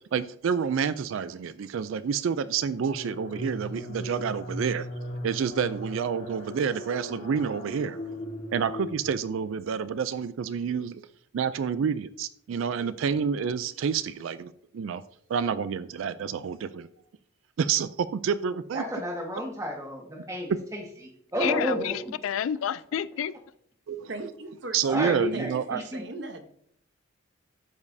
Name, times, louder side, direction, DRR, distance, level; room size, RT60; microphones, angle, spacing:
voice 1, 0.1-4.9 5.2-8.0 8.5-11.0 11.3-15.0 15.3-16.9 17.6-18.8 23.9-24.1 24.7-25.8, right 7 dB, 80° right, 14 dB, 0.4 m, -28 dB
sound 1, 2.7-9.6, equal, 65° left, 3.5 m, -38 dB
voice 2, 18.7-20.8 21.3-22.1 24.9-26.0, equal, 15° right, 1 dB, 1.4 m, -31 dB
voice 3, 21.4-23.3, left 9 dB, 85° left, 17 dB, 0.3 m, -29 dB
voice 4, 24.1-24.9 25.3-26.4, right 2 dB, 60° right, 7 dB, 0.9 m, -38 dB
13.0 x 5.2 x 2.7 m, 0.66 s
head